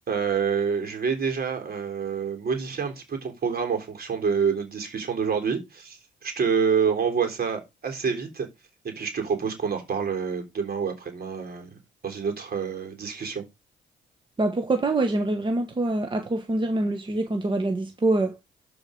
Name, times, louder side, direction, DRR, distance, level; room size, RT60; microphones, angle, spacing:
voice 1, 0.1-8.5 8.8-13.4, right 6 dB, 55° right, 3.8 m, -27 dB
voice 2, 14.4-18.4, right 2 dB, 25° right, 1.3 m, -25 dB
12.5 x 4.9 x 5.2 m
cardioid pair, 95°, 19 cm